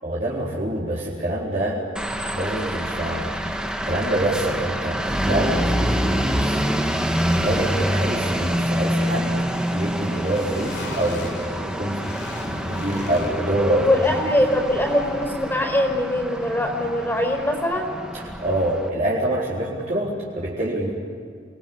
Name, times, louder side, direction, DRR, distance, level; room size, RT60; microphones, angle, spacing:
voice 1, 0.0-1.8 2.3-3.3 3.8-6.6 7.3-9.4 9.7-13.9 18.1-20.9, right 1 dB, 40° right, -7 dB, 4.3 m, -26 dB
sound 1, 2.0-18.9, equal, 5° right, 1.6 m, -26 dB
sound 2, 8.1-19.7, left 1 dB, 70° left, 5.9 m, -43 dB
voice 2, 13.7-17.9, left 1 dB, 10° left, 4 dB, 5.1 m, -22 dB
29.5 x 21.5 x 8.8 m, 2.1 s
head